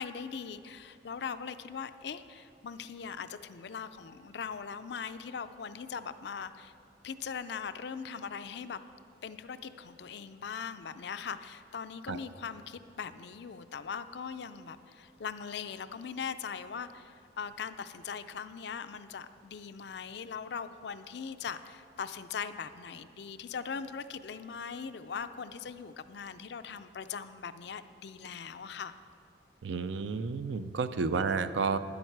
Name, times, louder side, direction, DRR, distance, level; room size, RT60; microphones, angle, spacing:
voice 1, 0.0-6.7 7.0-8.8 9.2-29.0, left 6 dB, 60° left, 12 dB, 0.4 m, -40 dB
voice 2, 29.6-31.8, right 4 dB, 70° right, 11 dB, 0.5 m, -31 dB
12.0 x 10.5 x 4.7 m, 2.6 s
head